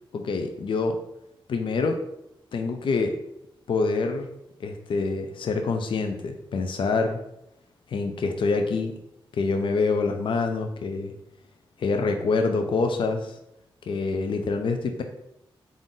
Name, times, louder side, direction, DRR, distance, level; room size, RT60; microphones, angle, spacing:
voice 1, 0.1-1.0 1.5-2.0 2.5-3.2 3.7-4.3 4.6-7.2 7.9-8.9 9.3-11.1 11.8-13.4 13.9-15.0, left 4 dB, 65° left, 5 dB, 0.4 m, -26 dB
3.7 x 2.5 x 3.6 m, 0.84 s
cardioid pair, 80°, 9 cm